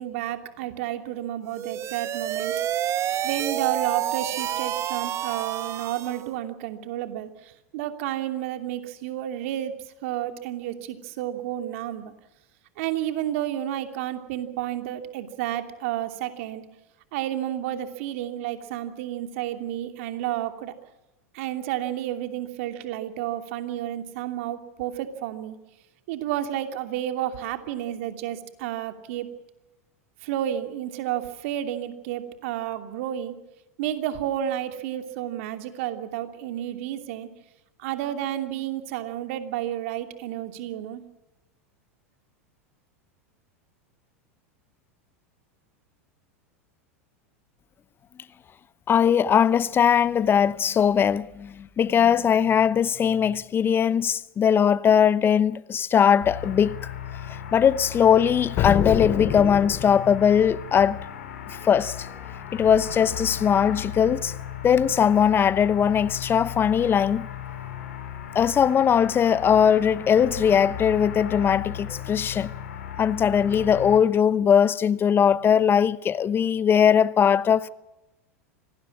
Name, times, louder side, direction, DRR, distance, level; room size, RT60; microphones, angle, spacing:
voice 1, 0.0-2.5 3.2-12.1 12.8-16.6 17.1-20.7 21.3-25.6 26.1-29.3 30.2-33.3 33.8-37.3 37.8-41.0, right 12 dB, 65° right, 2.8 m, -31 dB
sound 1, 1.5-6.3, right 11 dB, 40° right, 1.2 m, -29 dB
voice 2, 48.9-56.9 57.5-61.0 61.5-62.1 62.5-64.3 64.6-67.3 68.3-72.5 73.0-77.7, left 8 dB, 30° left, 0.8 m, -20 dB
sound 2, 56.2-74.0, left 10 dB, 75° left, 4.8 m, -36 dB
sound 3, 58.6-60.3, left 10 dB, 45° left, 2.9 m, -26 dB
26.0 x 19.0 x 7.3 m
hypercardioid pair, 90°, 8 cm